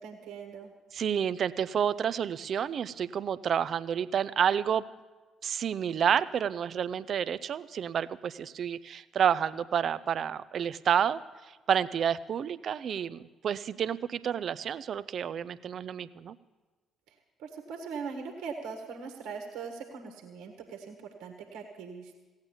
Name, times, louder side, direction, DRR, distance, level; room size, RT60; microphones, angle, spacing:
voice 1, 0.0-0.7 17.1-22.1, right 5 dB, 70° right, 2 dB, 1.6 m, -41 dB
voice 2, 0.9-4.8 5.4-11.2 11.7-16.3, right 8 dB, 55° right, 16 dB, 0.5 m, -29 dB
16.0 x 8.9 x 7.1 m, 1.2 s
hypercardioid pair, 45°, 0 cm